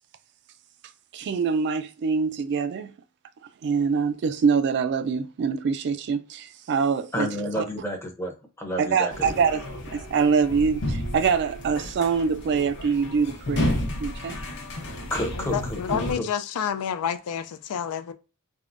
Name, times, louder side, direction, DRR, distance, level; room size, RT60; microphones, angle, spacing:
voice 1, 1.1-2.9 3.6-7.3 7.6-7.7 8.8-14.4, right 5 dB, 50° right, 0.3 m, -24 dB
voice 2, 7.1-9.1 15.1-16.3, equal, 10° left, 0.6 m, -30 dB
sound 1, 9.1-16.1, left 1 dB, 55° left, 0.7 m, -32 dB
voice 3, 15.3-18.1, left 8 dB, 85° left, 0.4 m, -29 dB
3.5 x 2.0 x 2.5 m
head